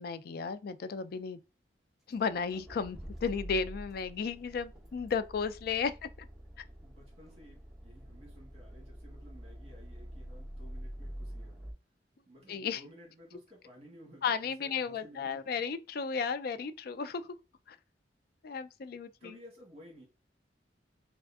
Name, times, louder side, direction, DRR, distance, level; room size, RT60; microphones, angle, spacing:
voice 1, 0.0-1.4 2.1-6.1 12.5-12.8 14.2-17.4 17.7-17.8 18.4-19.3, left 5 dB, 55° left, 0.4 m, -34 dB
Accelerating revving vroom, 2.1-11.7, equal, ahead, 0.9 m, -46 dB
voice 2, 6.8-11.6 12.3-15.4 19.2-20.1, equal, 35° right, 1.7 m, -55 dB
3.4 x 2.4 x 3.4 m
head